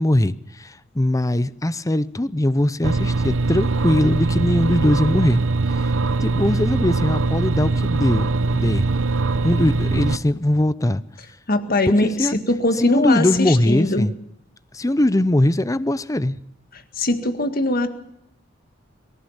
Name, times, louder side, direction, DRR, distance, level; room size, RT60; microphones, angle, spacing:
voice 1, 0.0-5.4 5.7-5.9 6.2-8.9 9.4-11.0 12.0-12.4 12.8-14.1 14.7-16.4, left 1 dB, 15° left, 0.7 m, -21 dB
sound 1, 2.8-10.2, right 3 dB, 85° right, 0.8 m, -21 dB
voice 2, 11.5-14.1 17.0-17.9, left 2 dB, 50° left, 1.9 m, -21 dB
23.5 x 15.0 x 7.3 m
head